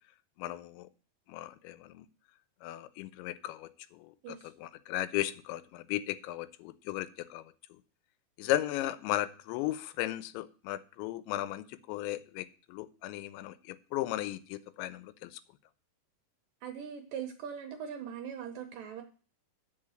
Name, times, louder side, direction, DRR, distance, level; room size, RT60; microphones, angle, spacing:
voice 1, 0.4-0.9 1.3-2.1 2.6-7.8 8.4-15.4, left 14 dB, 90° left, 14 dB, 2.9 m, -36 dB
voice 2, 16.6-19.0, right 8 dB, 75° right, 4 dB, 2.0 m, -41 dB
9.6 x 5.3 x 7.6 m, 0.40 s
omnidirectional pair, 5.1 m